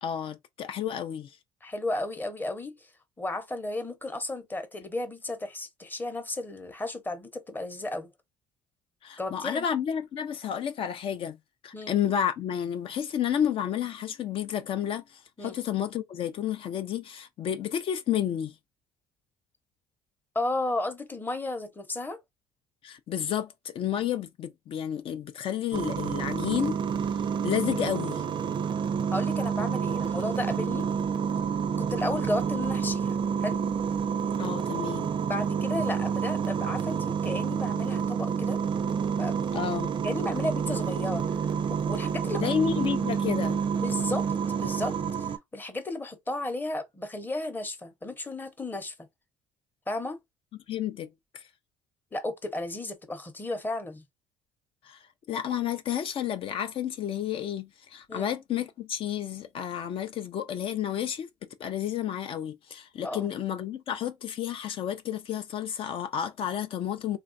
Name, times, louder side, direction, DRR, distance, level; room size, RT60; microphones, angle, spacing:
voice 1, 0.0-1.4 9.0-11.4 11.6-18.5 22.8-26.8 27.4-28.2 34.4-35.1 39.5-39.9 42.4-43.6 50.7-51.5 54.8-61.3 61.6-67.2, left 9 dB, 50° left, 0.4 m, -31 dB
voice 2, 1.6-2.9 3.2-8.1 9.2-9.7 11.7-11.9 15.4-15.6 20.3-22.2 29.1-30.9 31.8-33.6 35.3-38.6 39.2-39.4 40.0-41.2 41.7-42.5 43.8-44.3 44.6-48.9 49.9-50.2 52.1-54.0 58.1-58.3 63.0-63.3, left 2 dB, 15° left, 0.7 m, -33 dB
sound 1, 25.7-45.4, right 7 dB, 45° right, 0.4 m, -29 dB
3.2 x 2.3 x 2.5 m
cardioid pair, 105°, 11 cm